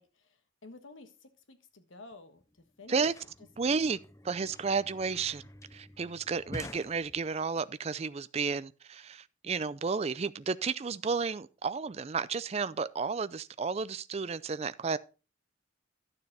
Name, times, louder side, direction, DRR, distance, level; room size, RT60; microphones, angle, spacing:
voice 1, 0.0-3.1 3.4-3.8 4.6-4.7, left 3 dB, 85° left, 1.5 m, -53 dB
sound 1, 2.1-2.2 2.4-7.6, left 1 dB, 15° left, 0.5 m, -49 dB
voice 2, 3.6-4.0 4.2-5.4 5.7-15.0, right 5 dB, 35° right, 0.4 m, -32 dB
11.5 x 6.8 x 4.2 m
head